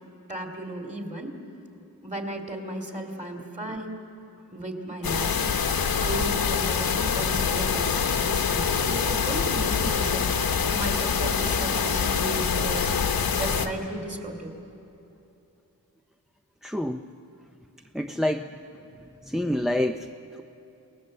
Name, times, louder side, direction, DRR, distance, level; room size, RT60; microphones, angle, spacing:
voice 1, 0.3-1.4 2.0-4.1 4.5-5.4 5.8-10.3 10.7-12.9 13.4-14.5, right 1 dB, 20° right, 4 dB, 2.6 m, -35 dB
sound 1, 5.0-13.7, left 6 dB, 80° left, 1.2 m, -25 dB
voice 2, 16.6-17.0 17.9-18.5 19.2-20.1, left 1 dB, ahead, 5 dB, 0.4 m, -27 dB
29.0 x 18.5 x 7.6 m, 2.8 s
wide cardioid pair, 135°, 36 cm